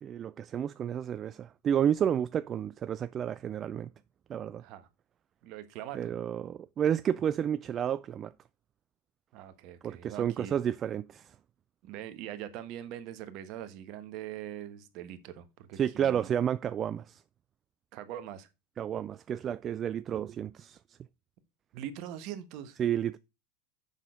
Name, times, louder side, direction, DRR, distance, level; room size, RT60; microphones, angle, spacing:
voice 1, 0.0-3.9 4.3-4.6 5.9-8.3 9.8-11.3 15.8-17.2 18.8-21.0 22.8-23.2, right 9 dB, 35° right, 0.3 m, -31 dB
voice 2, 5.4-6.1 9.3-10.5 11.8-16.3 17.9-18.5 21.7-22.8, right 11 dB, 55° right, 1.2 m, -42 dB
7.2 x 6.0 x 5.1 m
hypercardioid pair, 95°, 0 cm